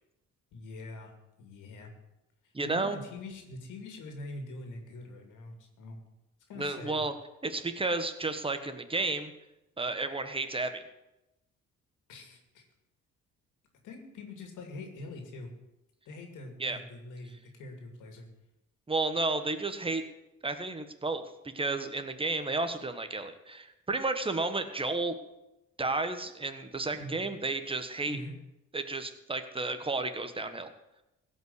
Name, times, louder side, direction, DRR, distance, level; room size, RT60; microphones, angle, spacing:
voice 1, 0.5-1.1 1.4-1.9 2.6-6.0 6.5-7.0 12.1-12.6 13.8-15.5 16.1-18.3 26.9-27.1 28.1-28.3, left 2 dB, 85° left, 3 dB, 2.5 m, -44 dB
voice 2, 2.5-3.0 6.6-7.1 7.4-9.3 9.8-10.8 16.6-16.8 18.9-20.0 20.4-25.1 25.8-28.2 28.7-30.7, right 3 dB, 20° right, 9 dB, 1.3 m, -32 dB
16.0 x 5.8 x 8.1 m, 0.93 s
cardioid pair, 90°, 30 cm